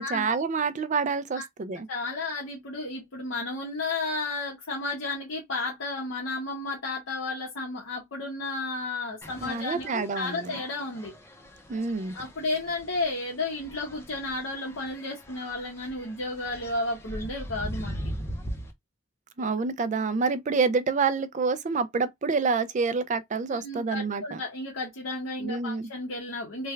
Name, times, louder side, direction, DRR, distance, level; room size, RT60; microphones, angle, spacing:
voice 1, 0.0-1.9 9.4-10.6 11.7-12.2 19.4-24.4 25.4-25.9, right 4 dB, 40° right, 0.4 m, -27 dB
voice 2, 1.9-11.1 12.1-18.0 19.4-19.5 23.5-26.7, left 2 dB, 90° left, 1.1 m, -33 dB
sound 1, 9.2-18.7, equal, 15° left, 0.6 m, -40 dB
3.3 x 2.3 x 3.1 m
head